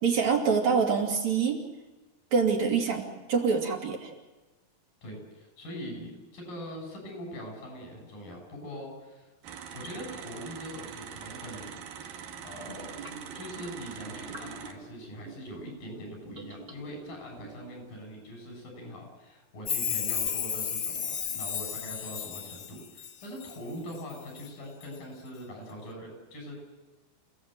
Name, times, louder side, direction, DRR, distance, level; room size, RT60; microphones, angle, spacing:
voice 1, 0.0-1.6 2.3-4.1, right 5 dB, 55° right, 0 dB, 3.7 m, -25 dB
voice 2, 5.0-9.3 9.7-11.7 12.4-12.9 13.3-26.6, equal, 70° left, 1 dB, 8.9 m, -42 dB
sound 1, 9.4-14.7, right 8 dB, 75° right, 3.1 m, -43 dB
sound 2, 12.6-15.7 16.2-17.7, right 3 dB, 20° right, 2.1 m, -46 dB
Chime, 19.6-23.6 23.9-24.5 24.8-24.9, left 8 dB, 90° left, 1.0 m, -33 dB
29.0 x 17.5 x 7.7 m, 1.1 s
omnidirectional pair, 4.1 m